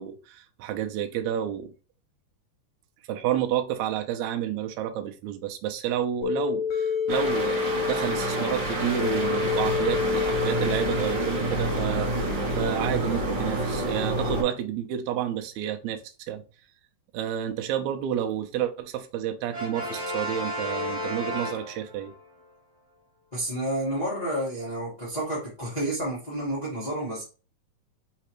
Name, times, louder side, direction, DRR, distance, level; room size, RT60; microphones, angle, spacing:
voice 1, 0.0-1.7 3.1-16.0 16.3-16.4 17.1-22.1, right 10 dB, 85° right, 1.6 m, -30 dB
sound 1, 6.2-11.8, left 7 dB, 90° left, 2.3 m, -28 dB
sound 2, 7.1-14.4, right 1 dB, 60° right, 1.1 m, -28 dB
Brass instrument, 19.5-22.2, left 1 dB, 20° right, 1.9 m, -33 dB
voice 2, 23.3-27.2, right 1 dB, 70° left, 0.4 m, -30 dB
4.9 x 3.3 x 3.0 m
omnidirectional pair, 4.0 m